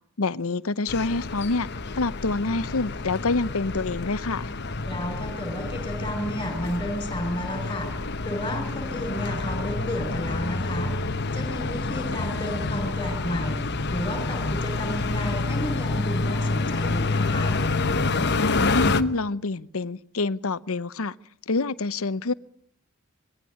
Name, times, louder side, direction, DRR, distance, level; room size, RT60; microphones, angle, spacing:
voice 1, 0.2-1.7 2.0-4.5 18.3-21.1 21.5-22.3, left 3 dB, 70° left, 0.8 m, -27 dB
sound 1, 0.9-19.0, left 3 dB, 50° left, 1.1 m, -28 dB
voice 2, 4.9-10.9 11.3-13.6 13.9-17.6, equal, 20° left, 5.7 m, -32 dB
22.0 x 16.0 x 9.9 m
head